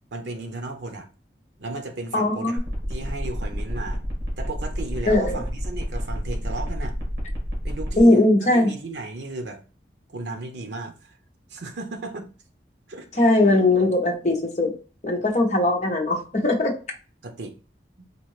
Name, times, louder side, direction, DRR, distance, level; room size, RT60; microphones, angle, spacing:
voice 1, 0.1-1.1 1.6-2.6 2.9-4.0 4.4-7.0 7.6-9.6 10.1-11.2 11.5-12.3 12.9-13.1 17.2-17.6 18.0-18.1, right 2 dB, 85° right, 0.7 m, -35 dB
voice 2, 2.1-2.6 5.1-5.4 8.0-8.7 13.2-14.7 15.0-16.7, left 2 dB, 40° left, 0.9 m, -19 dB
sound 1, 2.6-8.0, equal, 65° right, 1.7 m, -31 dB
4.4 x 2.5 x 3.1 m
head